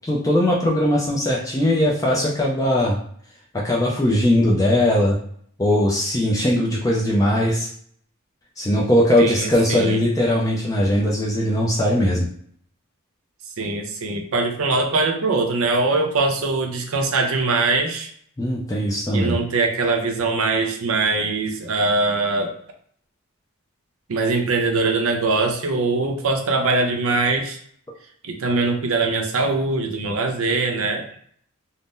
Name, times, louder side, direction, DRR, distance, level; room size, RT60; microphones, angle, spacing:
voice 1, 0.0-3.0 3.5-5.2 5.6-7.7 8.6-12.3 18.4-19.4, left 1 dB, 15° left, -3 dB, 0.4 m, -20 dB
voice 2, 9.2-10.0 13.6-18.1 19.1-22.5 24.1-27.6 28.2-31.2, right 3 dB, 70° right, 4 dB, 0.5 m, -22 dB
2.6 x 2.0 x 3.5 m, 0.62 s
head